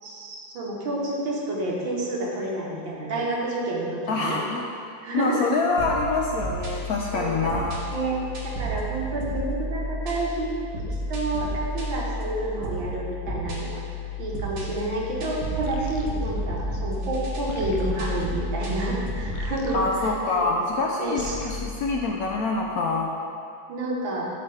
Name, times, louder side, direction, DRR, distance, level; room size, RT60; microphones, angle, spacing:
voice 1, 0.0-4.4 5.0-5.5 7.1-7.5 7.9-8.2 8.4-10.5 10.9-13.8 14.2-20.4 21.0-21.4 23.7-24.3, right 2 dB, 80° right, -3 dB, 2.1 m, -29 dB
voice 2, 4.1-4.7 5.1-7.9 19.7-23.1, left 3 dB, 70° left, -1 dB, 0.9 m, -26 dB
sound 1, 5.8-19.5, equal, 50° right, 1.5 m, -32 dB
sound 2, 15.6-20.8 21.1-22.8, left 3 dB, 85° left, 1.5 m, -37 dB
13.0 x 5.1 x 3.5 m, 2.5 s
omnidirectional pair, 2.1 m